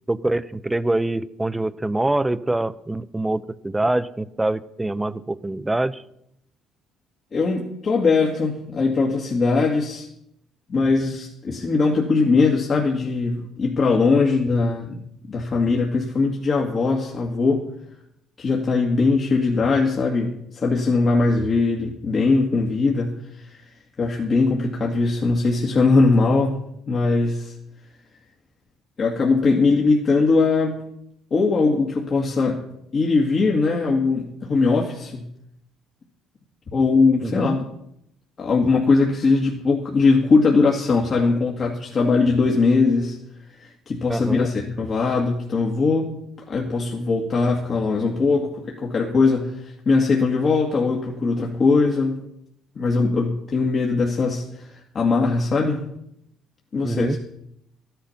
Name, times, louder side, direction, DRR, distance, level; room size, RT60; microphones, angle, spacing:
voice 1, 0.1-6.0 37.2-37.6 44.1-44.5 56.8-57.2, right 2 dB, 10° right, 15 dB, 0.7 m, -24 dB
voice 2, 7.3-10.1 10.7-15.0 15.3-17.7 18.4-26.6 26.9-27.5 29.0-30.8 31.3-32.6 32.9-35.2 36.7-37.6 38.4-43.2 43.5-46.2 46.5-52.2 52.8-55.8 56.7-57.2, left 3 dB, 45° left, -1 dB, 2.0 m, -20 dB
13.0 x 10.5 x 5.8 m, 0.77 s
supercardioid pair, 85°, 0 cm